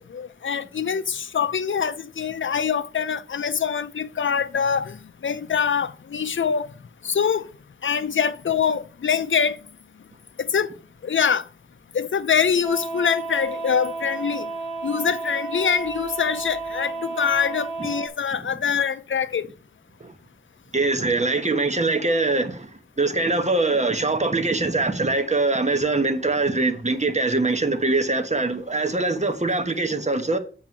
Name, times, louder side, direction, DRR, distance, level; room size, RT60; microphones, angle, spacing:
voice 1, 0.0-5.0 5.2-6.7 7.0-7.5 7.8-9.6 10.4-10.7 11.0-11.4 11.9-14.5 14.8-19.5, left 7 dB, 75° left, 0.5 m, -24 dB
sound 1, 12.6-18.1, right 3 dB, 30° left, 1.5 m, -32 dB
voice 2, 20.7-22.7 23.0-30.4, right 3 dB, 35° right, 1.2 m, -23 dB
7.6 x 4.7 x 6.0 m
wide cardioid pair, 55°, 20 cm